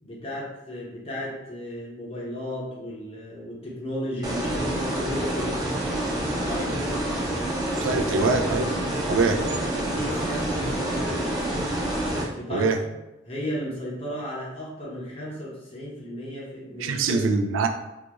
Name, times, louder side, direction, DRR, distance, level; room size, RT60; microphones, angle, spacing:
voice 1, 0.0-5.6 6.4-6.8 9.2-11.7 12.3-12.9 13.3-17.3, equal, 30° left, -4 dB, 0.9 m, -34 dB
sound 1, 4.2-12.2, right 1 dB, 20° right, 0.7 m, -27 dB
voice 2, 7.8-8.7 9.1-9.4 12.5-12.8 16.8-17.7, right 4 dB, 90° right, 6 dB, 0.4 m, -23 dB
3.9 x 2.3 x 2.9 m, 0.95 s
head